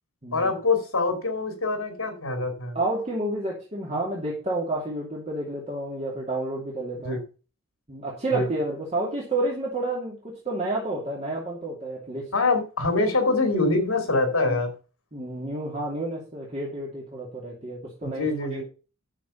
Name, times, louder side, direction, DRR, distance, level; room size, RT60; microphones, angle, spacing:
voice 1, 0.3-2.8 7.0-7.2 8.3-8.5 12.3-14.7 18.0-18.6, left 3 dB, 75° left, 5 dB, 2.8 m, -24 dB
voice 2, 2.7-7.2 7.9-12.3 14.5-14.6 15.1-18.6, right 2 dB, 30° right, -4 dB, 2.6 m, -30 dB
9.8 x 6.6 x 5.6 m, 0.35 s
head